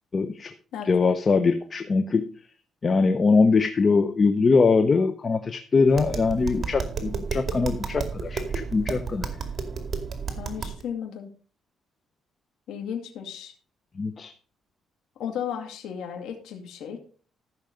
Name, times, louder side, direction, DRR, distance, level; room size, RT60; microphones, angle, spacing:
voice 1, 0.1-0.5 0.8-2.3 2.8-9.4 14.0-14.3, left 4 dB, 35° left, 9 dB, 0.9 m, -22 dB
Tap, 5.9-10.8, right 5 dB, 45° right, 2.4 m, -32 dB
voice 2, 10.4-11.3 12.7-13.5 15.2-17.0, left 8 dB, 85° left, 3 dB, 2.2 m, -34 dB
14.0 x 6.4 x 5.2 m, 0.41 s
cardioid pair, 90°, 0 cm